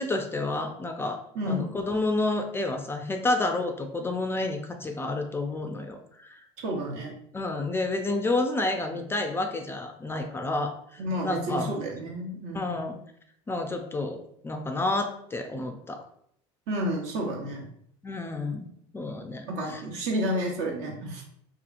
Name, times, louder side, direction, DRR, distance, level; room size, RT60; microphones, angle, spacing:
voice 1, 0.0-1.2 1.5-6.4 7.3-11.7 12.5-13.0 13.5-16.0 18.0-18.7 18.9-19.8, left 2 dB, 15° left, 4 dB, 0.3 m, -30 dB
voice 2, 1.3-1.7 6.6-7.1 11.0-12.7 16.7-17.6 19.5-21.2, equal, 65° right, -1 dB, 0.8 m, -30 dB
2.7 x 2.4 x 2.5 m, 0.69 s
supercardioid pair, 95°, 14 cm